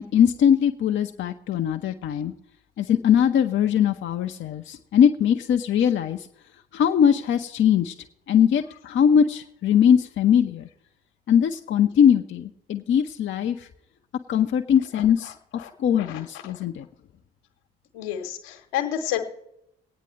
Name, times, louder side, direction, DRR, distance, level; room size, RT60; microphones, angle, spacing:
voice 1, 0.0-2.3 2.8-6.3 6.7-7.9 8.3-10.7 11.3-13.7 14.3-15.3 15.8-16.9, left 8 dB, 40° left, 6 dB, 0.7 m, -21 dB
voice 2, 16.0-16.6 17.9-19.2, left 10 dB, 65° left, 6 dB, 1.3 m, -30 dB
22.5 x 9.1 x 3.2 m, 0.81 s
figure-of-eight pair, 45°, 31 cm